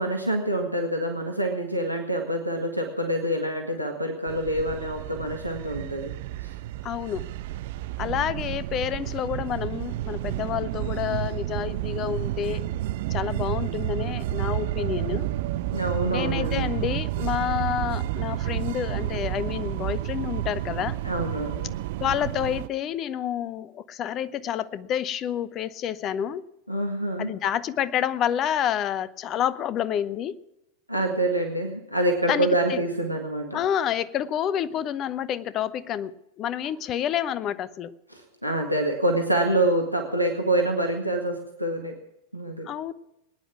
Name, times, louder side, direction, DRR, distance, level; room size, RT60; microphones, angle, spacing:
voice 1, 0.0-6.1 15.7-16.8 21.0-21.7 26.7-27.3 30.9-33.6 38.1-41.9 42.3-42.7, right 1 dB, 90° right, 1 dB, 1.8 m, -26 dB
sound 1, 4.3-22.7, right 14 dB, 50° right, 0.5 m, -30 dB
voice 2, 6.8-7.2 8.0-12.7 13.1-15.3 16.1-21.0 22.0-26.4 27.2-30.4 32.3-32.8 33.5-36.1 36.4-37.9 42.6-42.9, left 10 dB, 30° left, 17 dB, 0.8 m, -29 dB
20.0 x 10.0 x 6.0 m, 0.90 s
figure-of-eight pair, 90°, 0 cm